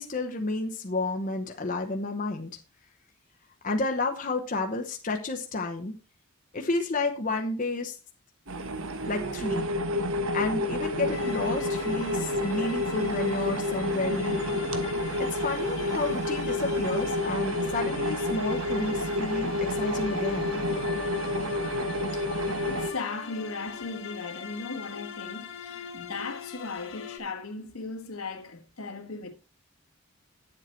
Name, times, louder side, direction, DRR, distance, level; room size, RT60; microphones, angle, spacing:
voice 1, 0.0-2.6 3.6-5.9 6.5-8.0 9.1-9.6 10.3-14.6 15.2-20.6, left 2 dB, 35° left, 0.9 m, -31 dB
sound 1, 8.5-22.9, left 1 dB, 70° right, 1.2 m, -29 dB
sound 2, 11.1-27.2, left 6 dB, 55° left, 1.7 m, -41 dB
voice 2, 22.1-29.3, left 3 dB, 75° left, 1.6 m, -37 dB
9.5 x 7.6 x 4.4 m
head